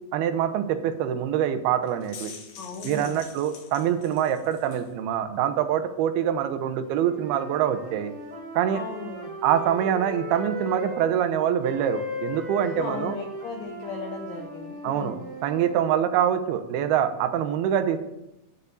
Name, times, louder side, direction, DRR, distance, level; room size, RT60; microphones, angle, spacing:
voice 1, 0.1-2.3 2.8-8.1 8.6-8.8 9.4-13.2 14.8-15.2 15.4-18.0, right 9 dB, 85° right, 9 dB, 2.7 m, -25 dB
sound 1, 1.8-4.9, left 6 dB, 65° left, 1.8 m, -45 dB
voice 2, 2.6-3.2 8.7-9.3 12.8-15.2, left 5 dB, 80° left, 4 dB, 1.5 m, -37 dB
sound 2, 7.0-11.1 11.6-15.8, left 1 dB, 35° right, 3.3 m, -37 dB
9.8 x 6.5 x 6.8 m, 0.93 s
omnidirectional pair, 4.4 m